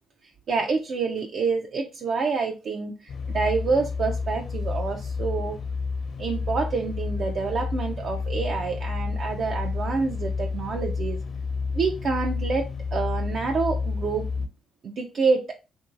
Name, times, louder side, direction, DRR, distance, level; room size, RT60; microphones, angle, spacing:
voice 1, 0.5-5.5 6.2-11.2 11.7-14.5 14.8-15.5, right 4 dB, 55° right, 0.4 m, -27 dB
sound 1, 3.1-14.5, left 4 dB, 55° left, 0.6 m, -30 dB
2.9 x 2.6 x 2.4 m
cardioid pair, 90°, 0 cm